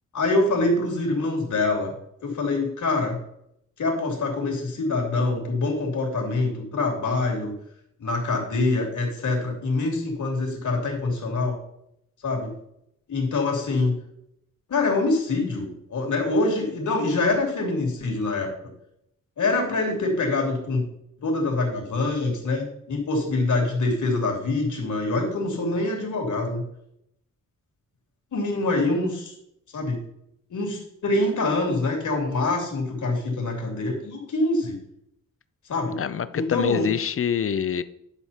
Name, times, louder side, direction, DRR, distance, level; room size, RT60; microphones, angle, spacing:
voice 1, 0.1-1.9 2.2-3.2 3.8-7.5 8.0-11.6 12.2-12.5 13.1-14.0 14.7-18.5 19.4-20.9 21.2-26.6 28.3-29.3 29.7-30.0 30.5-34.8 35.7-36.0 36.3-36.8, left 2 dB, 65° left, 0 dB, 3.1 m, -25 dB
voice 2, 36.0-37.8, left 8 dB, 45° left, 14 dB, 0.5 m, -25 dB
11.0 x 6.6 x 4.2 m, 0.75 s
wide cardioid pair, 175°, 32 cm